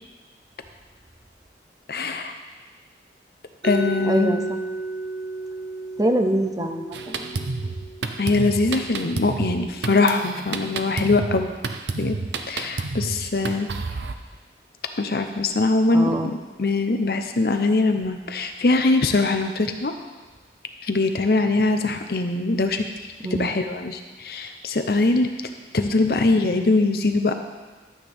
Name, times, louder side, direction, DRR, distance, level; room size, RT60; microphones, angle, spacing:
voice 1, 1.9-2.3 3.6-4.4 8.2-11.5 12.0-12.2 12.5-13.7 15.0-19.9 20.8-22.9 23.4-25.3 25.7-27.3, left 3 dB, 60° left, 6 dB, 0.7 m, -22 dB
Mallet percussion, 3.6-9.5, right 2 dB, 65° right, 2.4 m, -33 dB
voice 2, 4.0-4.6 6.0-7.7 15.9-16.3 23.2-23.5, right 1 dB, 20° right, 5 dB, 0.6 m, -25 dB
Drum kit, 6.9-14.1, right 3 dB, 80° right, 0.6 m, -30 dB
12.5 x 8.2 x 3.5 m, 1.3 s
head